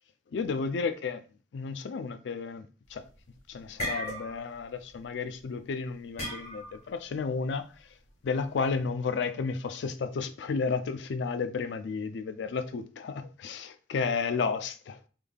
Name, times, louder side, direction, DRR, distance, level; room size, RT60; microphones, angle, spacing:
voice 1, 0.3-1.2 1.5-3.0 3.5-7.7 8.2-14.9, left 5 dB, 90° left, 0.4 m, -32 dB
sound 1, 2.9-3.2 3.5-4.6 4.9-5.2 6.2-6.9, equal, 35° left, 1.4 m, -36 dB
3.6 x 3.3 x 2.3 m
head